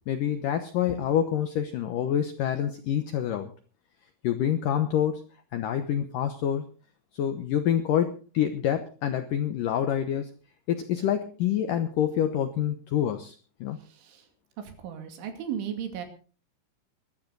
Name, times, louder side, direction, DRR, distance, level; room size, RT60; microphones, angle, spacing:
voice 1, 0.1-3.5 4.2-5.2 5.5-6.7 7.1-10.3 10.7-13.4 13.6-13.8, left 10 dB, 85° left, 8 dB, 1.9 m, -27 dB
voice 2, 13.9-14.2 14.8-16.1, right 9 dB, 90° right, 6 dB, 4.9 m, -35 dB
21.5 x 12.0 x 4.0 m, 0.37 s
omnidirectional pair, 5.4 m